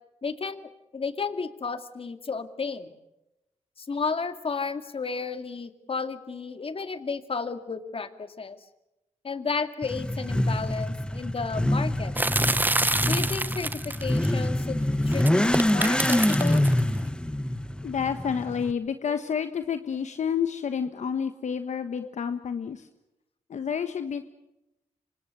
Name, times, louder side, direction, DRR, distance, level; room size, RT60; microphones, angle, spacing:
voice 1, 0.2-0.6 0.9-2.9 3.8-8.6 9.2-12.1 13.0-14.8 15.1-16.6 19.0-19.1 22.0-22.1, left 4 dB, 50° left, 9 dB, 2.4 m, -32 dB
Motorcycle / Accelerating revving vroom, 9.8-18.7, left 1 dB, 5° left, 1.2 m, -26 dB
sound 1, 12.2-14.3 15.1-16.8, right 2 dB, 15° right, 1.1 m, -27 dB
voice 2, 17.8-22.9 23.5-24.3, left 7 dB, 75° left, 9 dB, 1.3 m, -29 dB
27.0 x 26.0 x 6.9 m, 0.94 s
cardioid pair, 85°, 12 cm